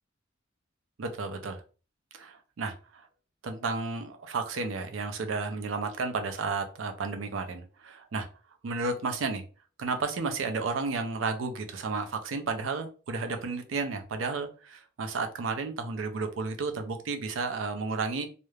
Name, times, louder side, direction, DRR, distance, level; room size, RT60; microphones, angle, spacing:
voice 1, 1.0-1.6 2.1-3.1 3.4-8.3 8.6-9.4 9.8-18.3, right 4 dB, 90° right, 0.5 m, -32 dB
2.3 x 2.1 x 3.1 m
head